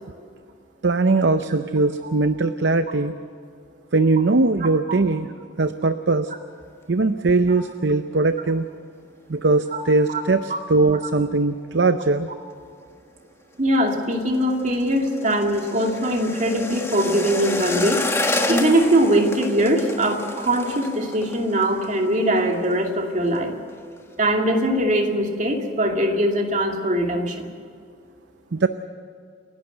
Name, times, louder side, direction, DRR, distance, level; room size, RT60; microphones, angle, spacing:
voice 1, 0.8-3.1 3.9-5.3 5.6-6.3 6.9-8.7 9.3-12.3 28.5-28.7, right 3 dB, 60° right, 10 dB, 0.7 m, -20 dB
voice 2, 13.6-18.0 18.5-23.5 24.2-27.5, right 1 dB, 40° right, 2 dB, 2.5 m, -21 dB
sound 1, 13.8-22.8 23.1-23.4 23.7-24.2 24.6-24.7, left 2 dB, 15° left, 1.3 m, -30 dB
29.0 x 12.0 x 7.9 m, 2.3 s
head